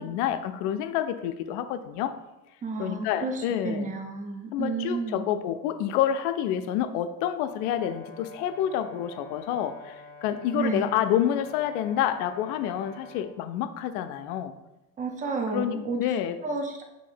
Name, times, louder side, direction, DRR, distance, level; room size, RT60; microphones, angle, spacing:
voice 1, 0.0-2.2 2.8-3.9 4.5-14.5 15.5-16.4, left 10 dB, 65° left, 10 dB, 0.5 m, -28 dB
voice 2, 2.6-5.3 10.5-11.0 15.0-16.0 16.4-16.8, right 4 dB, 15° right, 3 dB, 0.5 m, -31 dB
Brass instrument, 7.4-13.3, left 3 dB, 35° right, 1.4 m, -47 dB
3.1 x 2.8 x 4.4 m, 0.98 s
supercardioid pair, 105°, 49 cm